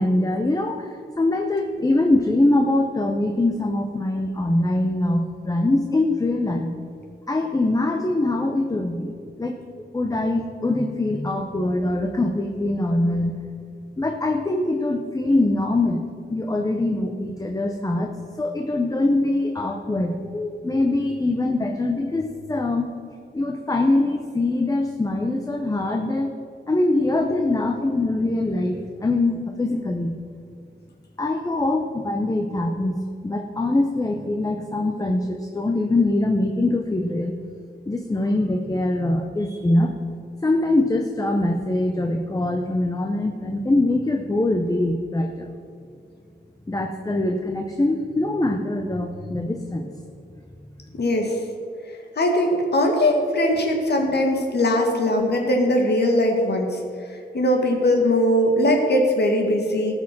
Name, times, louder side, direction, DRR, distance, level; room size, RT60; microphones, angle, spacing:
voice 1, 0.0-6.7 7.3-9.6 9.9-13.4 14.0-16.0 16.3-22.9 23.3-26.4 26.7-30.2 31.2-33.0 33.2-37.3 37.9-39.9 40.4-45.5 46.7-49.9, left 2 dB, 20° left, 3 dB, 0.7 m, -23 dB
voice 2, 51.0-51.4 52.2-56.8 57.3-59.9, left 1 dB, 65° left, 2 dB, 1.9 m, -20 dB
18.0 x 6.3 x 6.1 m, 2.4 s
wide cardioid pair, 160°, 18 cm